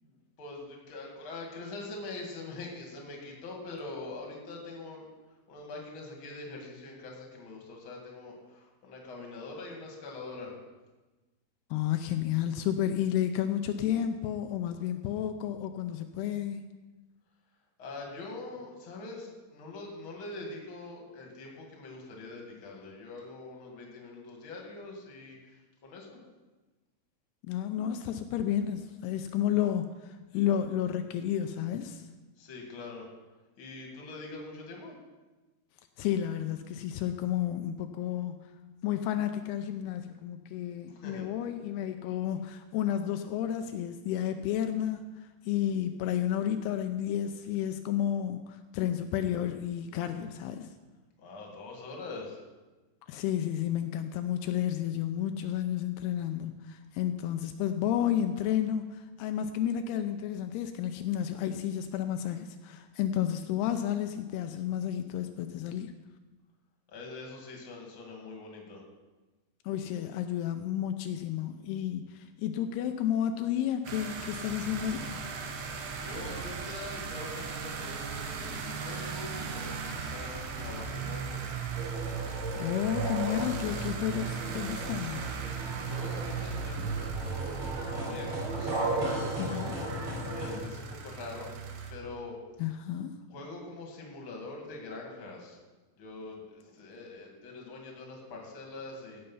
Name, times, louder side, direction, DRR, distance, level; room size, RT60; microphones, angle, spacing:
voice 1, 0.1-5.1 5.5-10.5 17.8-26.2 32.4-33.1 33.6-35.0 40.9-41.3 51.2-52.4 66.9-68.8 75.9-81.4 85.8-91.5 91.9-92.4 93.3-95.6 96.0-99.2, left 3 dB, 40° left, 0 dB, 2.3 m, -44 dB
voice 2, 11.7-16.6 27.4-32.1 36.0-38.4 38.8-50.7 53.1-65.9 69.7-75.2 82.3-85.3 89.4-89.7 92.6-93.1, left 10 dB, 85° left, 7 dB, 2.6 m, -31 dB
sound 1, 73.9-91.9, right 5 dB, 85° right, 3.3 m, -37 dB
sound 2, 81.7-90.5, right 2 dB, 35° right, 4.6 m, -36 dB
16.5 x 6.7 x 5.6 m, 1.2 s
omnidirectional pair, 4.7 m